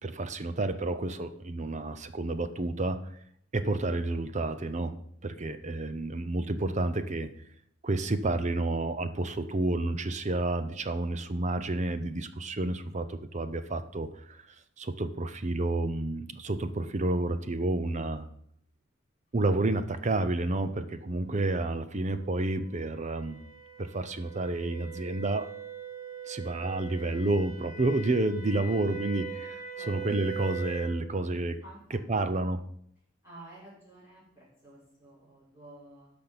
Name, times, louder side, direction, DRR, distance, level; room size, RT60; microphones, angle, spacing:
voice 1, 0.0-3.0 3.5-4.9 5.2-7.3 7.8-14.4 14.8-18.3 19.3-23.4 23.8-25.5 26.3-31.6 32.1-32.6, right 2 dB, 35° right, 11 dB, 0.7 m, -30 dB
sound 1, 21.1-31.0, right 6 dB, 35° left, 2.5 m, -42 dB
voice 2, 31.6-32.3 33.2-36.1, right 2 dB, 15° right, -10 dB, 5.0 m, -52 dB
12.5 x 5.3 x 6.1 m, 0.67 s
head